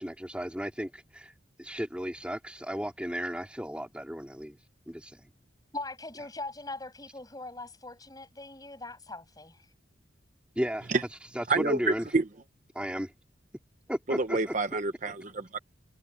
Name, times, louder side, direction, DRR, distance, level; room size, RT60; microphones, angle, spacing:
voice 1, 0.0-1.3 1.6-4.6 4.9-5.3 10.6-10.9 11.3-12.1 12.7-13.1 13.9-14.5, equal, 5° right, 3.7 m, -34 dB
voice 2, 5.7-9.7, left 2 dB, 20° left, 7.5 m, -41 dB
voice 3, 11.5-11.8 12.1-12.2 14.1-15.6, right 3 dB, 40° right, 0.9 m, -28 dB
head